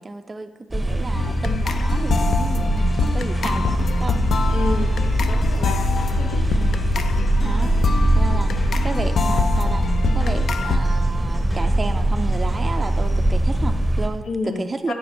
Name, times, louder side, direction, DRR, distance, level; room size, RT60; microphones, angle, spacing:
voice 1, 0.0-4.2 6.5-6.9 7.4-7.7 8.1-9.9 10.1-14.9, right 3 dB, 25° right, 6 dB, 0.3 m, -32 dB
sound 1, 0.7-14.1, right 1 dB, 5° right, 0.8 m, -21 dB
sound 2, 1.1-10.8, left 6 dB, 60° left, 0.3 m, -25 dB
sound 3, 2.7-13.1, left 2 dB, 30° left, 2.2 m, -38 dB
voice 2, 4.5-4.9 5.3-5.9 6.2-6.5 14.3-14.9, left 3 dB, 85° left, 3 dB, 0.7 m, -29 dB
8.6 x 6.6 x 2.9 m, 1.2 s
cardioid pair, 80°, 0 cm